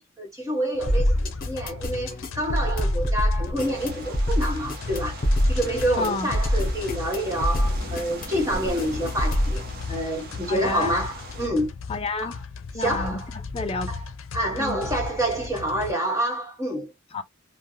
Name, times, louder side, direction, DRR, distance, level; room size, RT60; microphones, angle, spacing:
voice 1, 0.0-5.2 5.5-11.7 12.2-12.3 12.7-13.3 13.9-14.0 14.3-16.9, right 1 dB, 15° right, 1.2 m, -27 dB
sound 1, 0.7-15.9, left 4 dB, 85° left, 0.5 m, -37 dB
sound 2, 0.9-9.6, equal, 45° left, 0.9 m, -25 dB
sound 3, 3.6-11.5, right 2 dB, 50° right, 0.8 m, -41 dB
voice 2, 6.0-6.3 10.5-10.9 11.9-12.3 12.7-13.9 14.6-14.8 17.1-17.2, left 3 dB, 30° left, 0.4 m, -30 dB
3.3 x 2.2 x 2.7 m
head